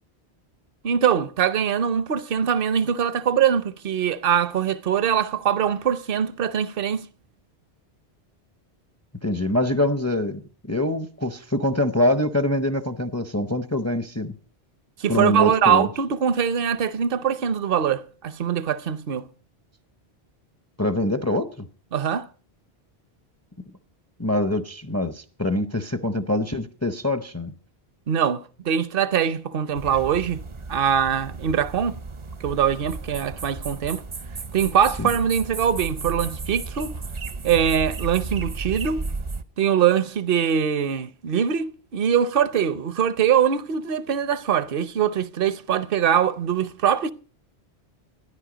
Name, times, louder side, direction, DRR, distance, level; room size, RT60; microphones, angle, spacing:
voice 1, 0.8-7.1 15.0-19.3 21.9-22.3 28.1-30.4 30.7-32.0 32.4-34.0 34.5-36.9 37.4-39.1 39.6-47.1, right 8 dB, 60° right, 0.9 m, -22 dB
voice 2, 9.2-14.3 15.1-15.9 20.8-21.7 24.2-27.5 35.0-35.1, left 1 dB, 20° left, 0.5 m, -24 dB
sound 1, 29.7-39.4, right 3 dB, 35° right, 0.5 m, -34 dB
13.0 x 10.5 x 5.0 m
omnidirectional pair, 1.1 m